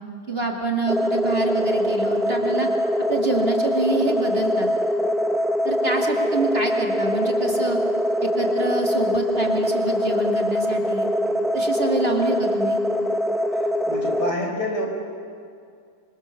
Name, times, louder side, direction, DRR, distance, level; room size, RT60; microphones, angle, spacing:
voice 1, 0.3-2.7 3.1-4.7 5.6-7.8 8.2-11.1 11.5-12.8, right 2 dB, 35° right, 1 dB, 2.5 m, -26 dB
sound 1, 0.9-14.3, equal, ahead, 0.8 m, -23 dB
voice 2, 13.9-14.9, left 1 dB, 75° left, 1 dB, 5.5 m, -27 dB
27.0 x 25.0 x 7.0 m, 2.3 s
omnidirectional pair, 1.8 m